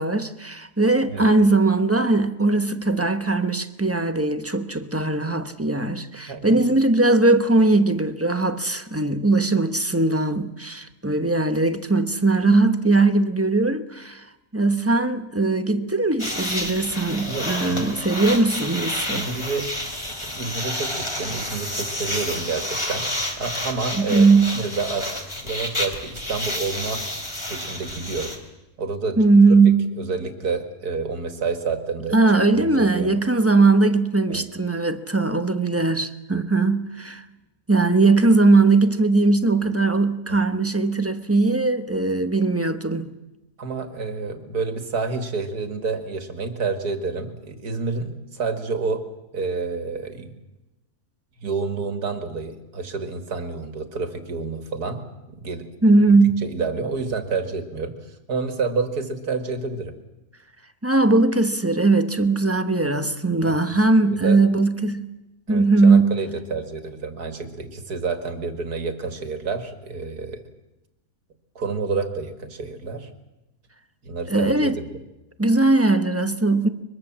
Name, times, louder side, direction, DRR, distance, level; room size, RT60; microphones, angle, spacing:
voice 1, 0.0-14.3 14.5-19.3 23.9-24.5 29.2-29.8 32.1-37.2 37.7-43.1 55.8-56.4 60.8-65.1 65.5-66.1 74.3-74.8 75.4-76.7, right 3 dB, 10° right, 0.8 m, -19 dB
voice 2, 6.3-6.6 17.3-17.8 19.1-19.7 20.1-23.1 23.4-24.3 24.5-27.0 27.5-28.4 28.8-29.2 30.0-32.2 32.5-33.1 34.3-34.4 40.3-40.4 43.6-49.0 49.3-50.3 51.4-55.7 56.4-58.0 58.3-60.0 63.4-63.5 64.1-64.4 65.5-70.4 71.6-73.1 74.0-74.8, right 4 dB, 80° right, 2.6 m, -29 dB
sound 1, 16.2-28.4, left 1 dB, 15° left, 3.2 m, -30 dB
23.0 x 22.0 x 7.4 m
omnidirectional pair, 1.7 m